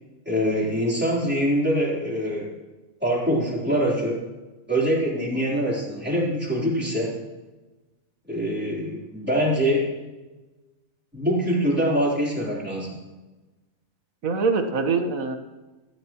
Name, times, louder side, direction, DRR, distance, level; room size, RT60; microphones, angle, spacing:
voice 1, 0.3-2.5 3.0-4.2 4.7-7.2 8.3-9.9 11.1-13.0, equal, 5° right, -5 dB, 3.6 m, -24 dB
voice 2, 5.2-5.5 14.2-15.4, right 4 dB, 85° right, 6 dB, 1.7 m, -24 dB
18.0 x 14.0 x 3.0 m, 1.2 s
omnidirectional pair, 1.4 m